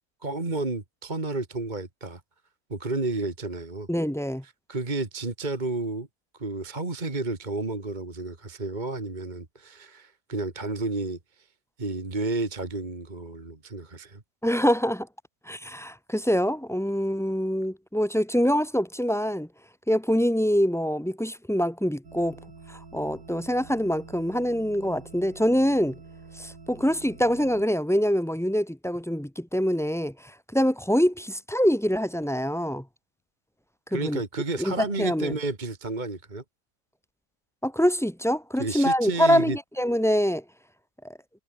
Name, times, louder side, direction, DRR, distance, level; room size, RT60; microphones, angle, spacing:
voice 1, 0.2-2.2 2.7-3.9 4.4-6.1 6.3-11.5 11.8-14.2 33.9-36.4 38.6-39.6, right 2 dB, 30° right, 2.3 m, -31 dB
voice 2, 3.9-4.4 14.4-15.1 15.5-19.5 19.9-22.4 22.7-26.0 26.4-32.8 33.9-34.2 34.6-35.4 37.6-40.4 41.0-41.1, equal, ahead, 0.7 m, -25 dB
sound 1, 22.0-27.6, right 4 dB, 85° right, 3.7 m, -47 dB
omnidirectional pair, 1.7 m